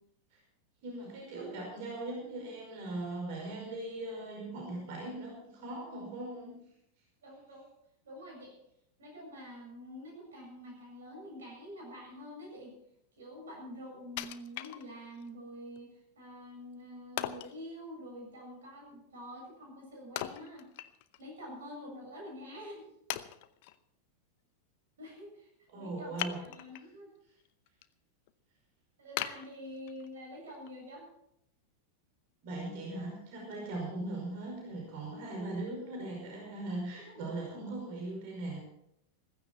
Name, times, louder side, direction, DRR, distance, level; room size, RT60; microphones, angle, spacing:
voice 1, 0.8-6.6 25.7-26.4 32.4-38.6, right 2 dB, 50° right, 0 dB, 5.3 m, -39 dB
voice 2, 7.2-7.7 8.0-8.5 9.0-12.7 13.2-20.7 21.2-23.2 25.0-25.5 25.7-27.1 29.0-31.0 36.9-37.3, equal, 65° right, 0 dB, 7.5 m, -47 dB
Wood, 14.2-15.3 15.8-15.9 17.2-17.6 20.2-21.3 21.6-21.7 22.4-22.5 23.1-23.8 26.2-26.9 27.4-27.8 28.3-28.4 29.2-30.2 30.7-30.8, left 14 dB, 50° left, 0.7 m, -39 dB
15.5 x 15.5 x 4.4 m, 0.76 s
figure-of-eight pair, 90°, 0 cm